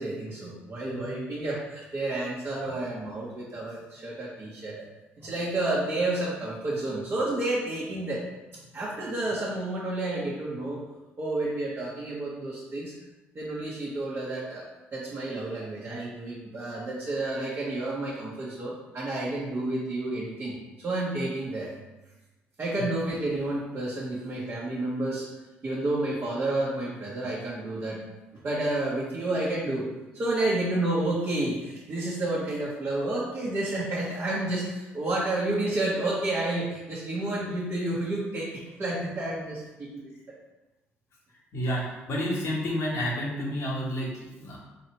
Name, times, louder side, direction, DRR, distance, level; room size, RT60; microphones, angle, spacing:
voice 1, 0.0-4.8 5.2-8.2 8.7-10.8 11.2-12.9 13.3-14.6 14.9-21.7 22.6-25.3 25.6-28.0 28.4-29.9 30.1-40.4, right 2 dB, 40° right, -7 dB, 1.2 m, -30 dB
voice 2, 41.5-44.6, equal, 60° left, -4 dB, 1.5 m, -30 dB
4.1 x 2.8 x 4.5 m, 1.1 s
hypercardioid pair, 60°, 5 cm